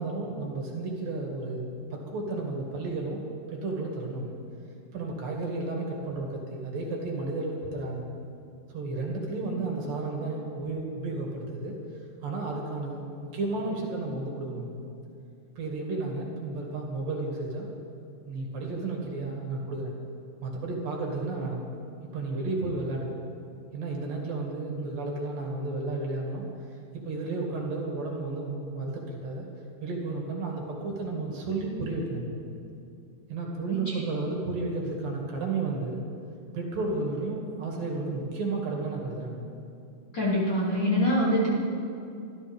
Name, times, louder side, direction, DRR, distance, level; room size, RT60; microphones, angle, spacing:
voice 1, 0.0-3.2 3.5-4.3 4.9-8.1 8.7-11.7 12.2-13.0 13.3-14.8 15.6-17.7 18.3-19.9 20.4-21.6 22.1-23.1 23.7-26.4 26.9-29.4 29.8-32.3 33.3-36.0 36.5-39.5, right 3 dB, 65° right, -1 dB, 3.8 m, -32 dB
voice 2, 33.7-34.0 40.1-41.5, left 1 dB, 30° left, -7 dB, 2.9 m, -25 dB
25.5 x 13.5 x 3.6 m, 2.6 s
omnidirectional pair, 4.4 m